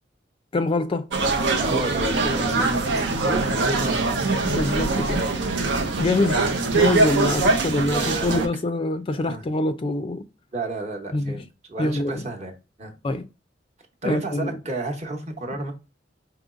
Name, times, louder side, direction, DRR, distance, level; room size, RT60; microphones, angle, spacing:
voice 1, 0.5-1.1 4.4-5.3 6.0-6.4 6.7-10.3 11.1-11.4 11.8-12.3 13.0-13.3 14.0-14.6, left 2 dB, 30° left, 0.3 m, -25 dB
sound 1, 1.1-8.5, right 3 dB, 85° right, 0.7 m, -23 dB
voice 2, 1.6-4.2 6.7-6.8 7.2-7.6 7.9-8.4 9.2-9.5 10.5-12.9 14.0-15.7, right 2 dB, 40° right, 0.9 m, -31 dB
5.1 x 2.9 x 2.4 m
head